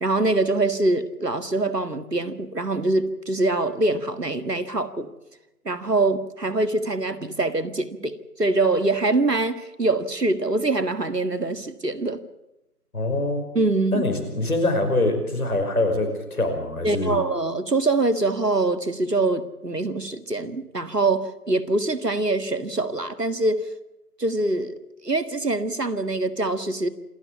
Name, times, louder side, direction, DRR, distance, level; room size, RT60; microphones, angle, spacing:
voice 1, 0.0-5.1 5.7-12.2 13.5-14.0 16.8-23.7 24.2-26.9, right 2 dB, 85° right, 11 dB, 1.9 m, -24 dB
voice 2, 12.9-13.4 13.9-17.2, left 2 dB, 65° left, 4 dB, 5.5 m, -24 dB
27.0 x 12.5 x 8.4 m, 0.97 s
figure-of-eight pair, 155°, 47 cm